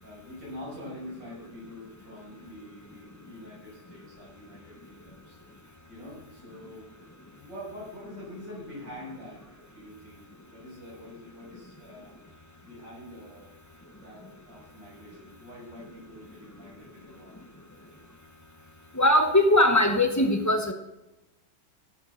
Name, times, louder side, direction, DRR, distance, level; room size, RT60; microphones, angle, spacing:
voice 1, 0.0-5.4 5.9-6.9 7.3-10.2 10.5-12.2 12.6-13.5 14.0-17.4, left 1 dB, 60° right, -6 dB, 7.6 m, -45 dB
voice 2, 18.9-20.7, left 1 dB, 20° left, 5 dB, 0.5 m, -20 dB
17.5 x 7.6 x 6.5 m, 0.98 s
omnidirectional pair, 2.2 m